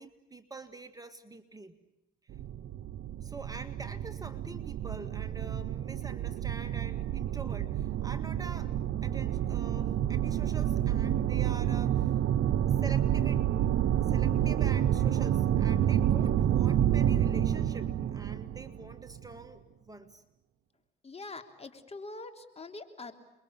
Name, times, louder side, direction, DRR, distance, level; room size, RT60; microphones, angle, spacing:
voice 1, 0.0-1.8 3.2-8.7 9.0-12.2 12.8-13.5 14.1-20.2, right 2 dB, 20° right, 8 dB, 1.9 m, -46 dB
sound 1, 2.3-19.3, right 11 dB, 75° right, 0.9 m, -29 dB
voice 2, 21.0-23.1, left 3 dB, 30° left, 7 dB, 3.3 m, -44 dB
29.0 x 22.5 x 8.6 m, 0.91 s
cardioid pair, 90°, 20 cm